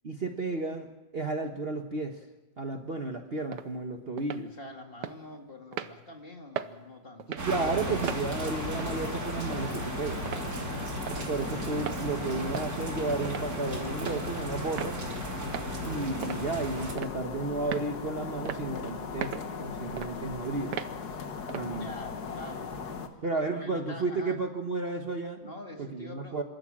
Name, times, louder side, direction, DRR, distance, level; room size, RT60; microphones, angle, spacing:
voice 1, 0.0-2.2 2.6-4.5 7.4-10.2 11.3-15.0 15.9-20.8 21.5-21.9 23.2-25.4 25.8-26.4, right 3 dB, 40° right, 5 dB, 1.3 m, -33 dB
sound 1, 3.5-3.7 4.2-4.4 5.0-5.2 5.7-5.9 6.6-6.7 7.2-7.5 8.0-8.2 8.8-9.0 9.5-9.6 10.3-10.5 11.1-11.2 11.8-12.0 12.5-12.8 13.3-13.5 14.0-14.2 14.8-15.0 15.5-15.7 16.2-16.4 17.0-17.2 17.7-17.9 18.5-18.6 19.2-19.5 20.0-20.1 20.7-20.9 21.5-21.7, right 9 dB, 80° right, 1.5 m, -36 dB
voice 2, 4.6-7.2 21.7-22.7 23.4-24.4 25.4-26.4, left 1 dB, 30° left, 3 dB, 2.4 m, -45 dB
sound 2, 7.4-16.9, right 1 dB, 55° right, 3.1 m, -36 dB
sound 3, 7.8-23.1, left 5 dB, 65° left, 1.9 m, -39 dB
27.0 x 13.5 x 7.5 m, 1.1 s
omnidirectional pair, 1.8 m